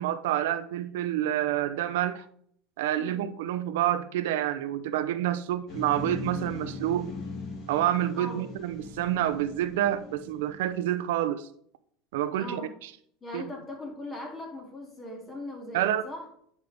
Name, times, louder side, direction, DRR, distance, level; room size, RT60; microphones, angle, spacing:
voice 1, 0.0-2.3 2.8-7.1 7.7-11.5 12.1-12.9 13.3-13.4 15.7-16.0, right 12 dB, 90° right, 0.6 m, -28 dB
sound 1, 5.7-10.9, left 3 dB, 45° left, 2.9 m, -40 dB
voice 2, 8.1-8.5 12.4-12.8 13.2-16.2, left 2 dB, 25° left, 2.5 m, -40 dB
9.5 x 5.3 x 3.5 m
supercardioid pair, 125°, 0 cm